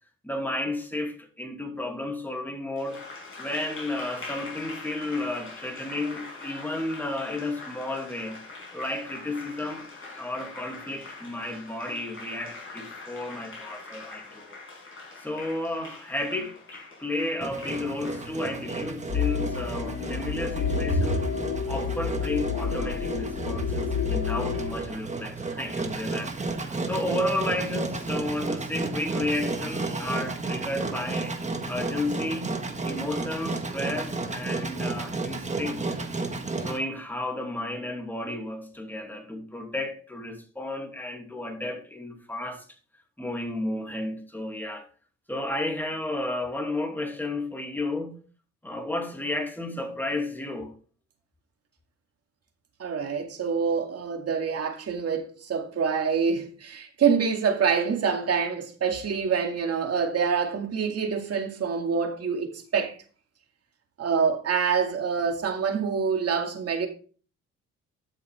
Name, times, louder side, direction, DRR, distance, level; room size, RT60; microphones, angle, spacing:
voice 1, 0.2-3.1 3.4-8.4 8.7-14.5 15.2-21.2 21.7-26.5 26.8-31.4 31.7-35.8 36.6-42.6 43.2-44.9 45.3-48.2 48.6-50.7, left 1 dB, 5° left, 2.7 m, -32 dB
Applause, 2.8-20.6, left 3 dB, 45° left, 5.5 m, -43 dB
Engine, 17.4-36.8, right 3 dB, 25° right, 1.5 m, -33 dB
sound 1, 19.1-24.7, left 5 dB, 85° left, 2.5 m, -29 dB
voice 2, 52.8-62.9 64.0-66.9, right 6 dB, 55° right, 2.3 m, -26 dB
12.0 x 6.4 x 3.6 m
cardioid pair, 90°, 30 cm